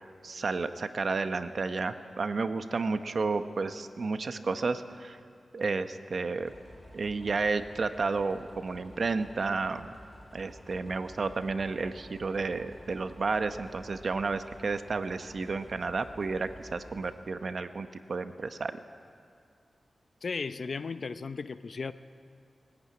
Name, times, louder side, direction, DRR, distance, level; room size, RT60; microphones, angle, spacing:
voice 1, 0.2-5.2 5.5-6.5 6.9-9.9 10.3-18.8, right 4 dB, 60° right, 9 dB, 1.0 m, -31 dB
sound 1, 6.4-17.1, equal, ahead, 6.9 m, -52 dB
voice 2, 20.2-21.9, left 4 dB, 60° left, 12 dB, 0.7 m, -35 dB
21.0 x 14.5 x 9.6 m, 2.2 s
wide cardioid pair, 85°, 0 cm